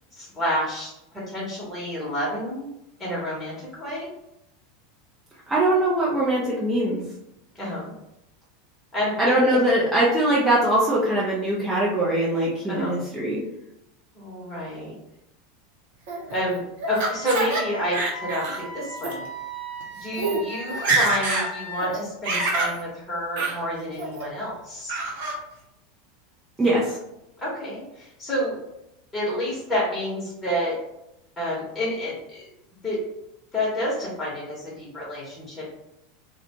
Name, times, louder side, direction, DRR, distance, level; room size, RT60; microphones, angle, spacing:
voice 1, 0.1-0.9 1.3-2.7 3.0-4.1 7.5-7.9 8.9-9.4 12.7-13.0 14.1-15.0 16.3-18.5 18.7-19.3 20.0-25.0 27.4-28.6 29.1-30.8 31.4-32.5 32.8-33.0 33.5-35.7, equal, 15° left, -6 dB, 1.1 m, -29 dB
voice 2, 5.5-7.0 9.2-13.4 26.6-27.0, right 1 dB, 15° right, -6 dB, 0.6 m, -22 dB
Laughter, 16.1-17.6 17.9-18.6 19.0-19.1 19.8-19.9 20.1-20.4 20.7-21.5 21.8-22.8 23.4-23.6 24.0-24.4 24.9-25.4, right 3 dB, 55° right, 0.6 m, -26 dB
Wind instrument woodwind instrument, 16.8-21.9, right 1 dB, 85° right, 0.9 m, -37 dB
2.4 x 2.2 x 2.9 m, 0.85 s
figure-of-eight pair, 80°, 0 cm